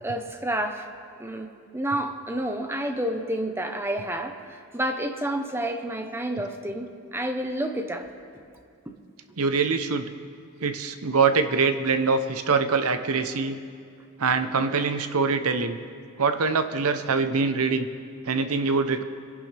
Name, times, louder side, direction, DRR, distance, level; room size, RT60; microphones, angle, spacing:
voice 1, 0.0-0.9 1.2-8.1, right 1 dB, 10° right, 5 dB, 0.9 m, -29 dB
voice 2, 9.4-10.1 10.6-13.6 14.2-15.8 16.2-17.9 18.2-19.0, right 4 dB, 85° right, 9 dB, 0.9 m, -24 dB
26.5 x 11.0 x 3.4 m, 2.3 s
head